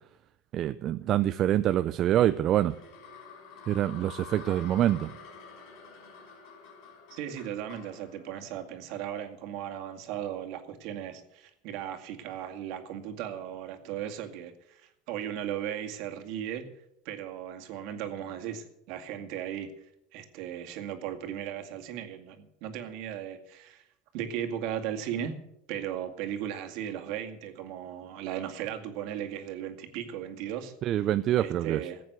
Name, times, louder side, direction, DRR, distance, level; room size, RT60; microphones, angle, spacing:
voice 1, 0.5-2.7 3.7-5.1 30.8-31.8, right 12 dB, 40° right, 12 dB, 0.5 m, -25 dB
sound 1, 2.2-9.4, left 6 dB, 65° left, 5.1 m, -49 dB
voice 2, 7.1-16.6 17.1-19.7 20.1-23.8 24.1-25.3 25.7-30.7 31.4-32.0, right 10 dB, 60° right, 5 dB, 2.1 m, -36 dB
15.5 x 8.4 x 8.1 m, 0.82 s
supercardioid pair, 135°, 0 cm